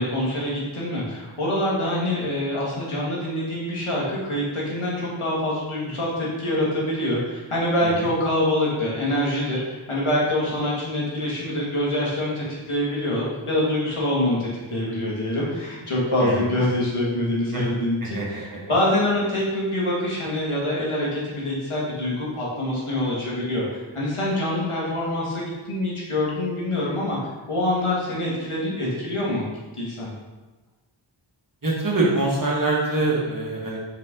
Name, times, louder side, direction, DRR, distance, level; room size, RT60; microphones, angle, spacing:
voice 1, 0.0-27.2 27.5-29.5 29.7-30.1, left 1 dB, 85° left, -5 dB, 2.0 m, -25 dB
voice 2, 18.0-18.6 31.6-33.8, right 2 dB, 40° right, -4 dB, 1.8 m, -24 dB
5.7 x 4.8 x 3.8 m, 1.2 s
wide cardioid pair, 40°, 49 cm